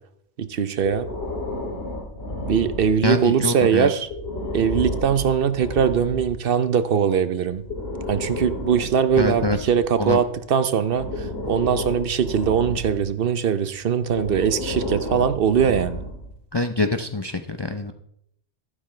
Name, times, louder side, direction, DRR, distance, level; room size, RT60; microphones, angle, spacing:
voice 1, 0.4-1.1 2.4-4.1 4.5-7.6 8.1-16.0, right 7 dB, 60° right, 12 dB, 0.8 m, -21 dB
Breathing, 0.8-3.3 4.0-6.4 7.5-10.3 10.9-13.1 14.1-16.4, left 1 dB, 65° left, 2.5 m, -32 dB
voice 2, 3.0-3.9 9.2-9.6 10.0-10.2 16.5-17.9, left 2 dB, 30° left, 7 dB, 0.6 m, -24 dB
13.5 x 11.5 x 3.2 m, 0.72 s
omnidirectional pair, 1.1 m